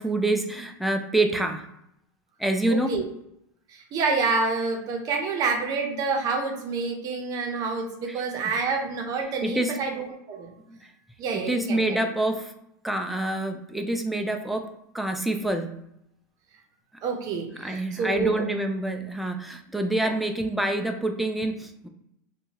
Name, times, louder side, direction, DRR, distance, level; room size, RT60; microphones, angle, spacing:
voice 1, 0.0-1.7 2.4-3.0 8.1-8.5 9.4-9.8 10.7-10.8 11.3-12.5 12.8-15.8 17.6-21.9, right 1 dB, ahead, 4 dB, 0.3 m, -27 dB
voice 2, 2.7-3.0 3.7-10.5 11.2-12.0 17.0-18.4 20.0-20.1, right 4 dB, 35° right, 2 dB, 0.7 m, -28 dB
2.7 x 2.3 x 2.8 m, 0.79 s
supercardioid pair, 130°, 10 cm